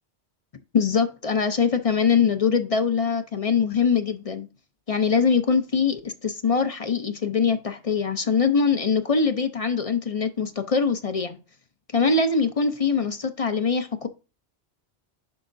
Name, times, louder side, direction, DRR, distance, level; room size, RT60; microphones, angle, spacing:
voice 1, 0.7-4.5 4.9-11.4 11.9-14.1, left 5 dB, 40° left, 0.6 m, -23 dB
10.5 x 4.9 x 2.6 m
omnidirectional pair, 1.1 m